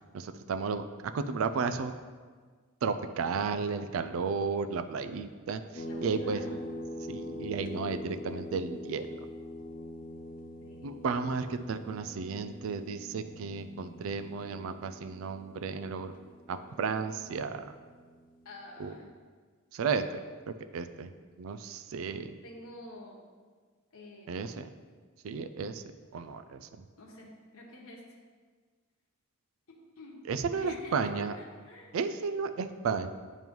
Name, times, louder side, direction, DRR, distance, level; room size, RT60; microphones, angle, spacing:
voice 1, 0.1-1.9 2.8-6.4 7.1-9.2 10.8-16.1 16.5-17.7 18.8-19.0 19.7-20.2 20.5-21.1 21.4-22.3 24.3-24.7 25.2-25.8 26.1-26.9 30.2-31.4 31.9-33.1, right 5 dB, 75° right, 9 dB, 0.4 m, -33 dB
voice 2, 5.8-6.6 10.6-10.9 18.4-19.1 22.4-23.2 23.9-24.3 27.0-28.2 30.0-30.2 30.5-30.9 31.4-31.9, left 2 dB, 85° left, -2 dB, 1.1 m, -48 dB
sound 1, 5.8-18.9, equal, 40° left, 0.5 m, -44 dB
9.0 x 3.0 x 5.3 m, 1.5 s
head